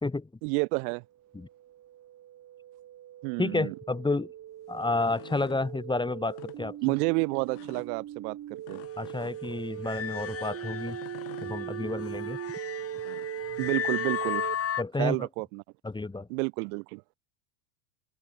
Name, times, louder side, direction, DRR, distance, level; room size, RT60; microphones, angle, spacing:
voice 1, 0.4-1.0 3.2-3.7 6.8-8.8 13.6-14.5 15.0-15.6 16.3-17.0, right 34 dB, 60° right, 5.3 m, -30 dB
sound 1, 1.3-14.5, right 12 dB, 30° right, 2.7 m, -40 dB
voice 2, 3.4-4.3 4.7-6.8 9.0-11.0 11.4-12.4 14.8-15.3 15.8-16.3, left 3 dB, 10° left, 2.9 m, -30 dB
sound 2, 4.7-5.6 6.3-6.6 7.5-7.9 8.6-9.6 10.8-11.5 12.7-13.4, left 21 dB, 50° left, 7.6 m, -49 dB
sound 3, 9.8-14.8, left 9 dB, 30° left, 3.1 m, -35 dB
open air
supercardioid pair, 115°, 50 cm